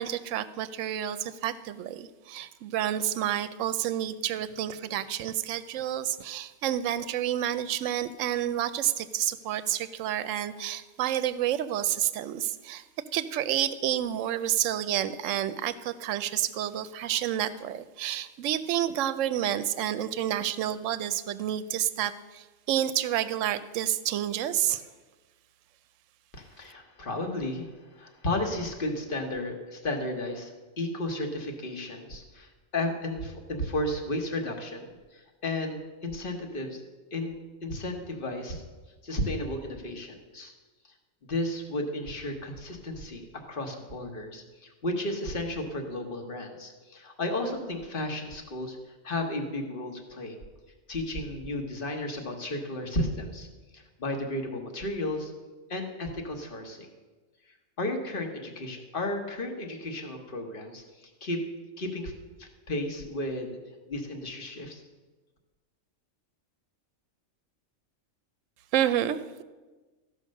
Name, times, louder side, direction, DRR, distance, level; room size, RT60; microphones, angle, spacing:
voice 1, 0.0-12.8 13.1-24.9 68.7-69.2, right 11 dB, 70° right, 14 dB, 0.9 m, -29 dB
voice 2, 26.3-36.8 37.1-38.6 39.0-40.5 40.8-40.9 41.3-50.4 50.9-53.5 53.7-55.3 55.7-56.9 57.5-61.4 61.8-62.1 62.4-63.6 63.9-64.8, left 1 dB, 40° left, 4 dB, 1.4 m, -33 dB
14.0 x 5.5 x 6.4 m, 1.3 s
omnidirectional pair, 1.4 m